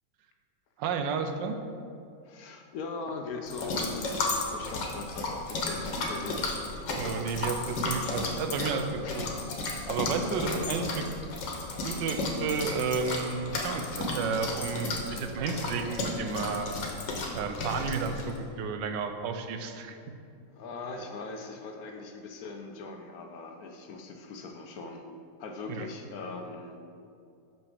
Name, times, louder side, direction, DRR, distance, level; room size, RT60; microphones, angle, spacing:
voice 1, 0.8-1.6 7.0-9.2 9.9-11.1 11.8-16.7 17.3-20.0 25.7-25.9, right 5 dB, 90° right, 6 dB, 1.3 m, -32 dB
voice 2, 2.2-6.5 9.0-9.4 10.2-10.9 12.0-12.1 20.5-25.1 25.4-26.8, left 3 dB, 65° left, 4 dB, 1.1 m, -40 dB
sound 1, 3.5-18.4, left 2 dB, 85° left, 1.8 m, -34 dB
6.1 x 5.9 x 6.5 m, 2.5 s
omnidirectional pair, 1.9 m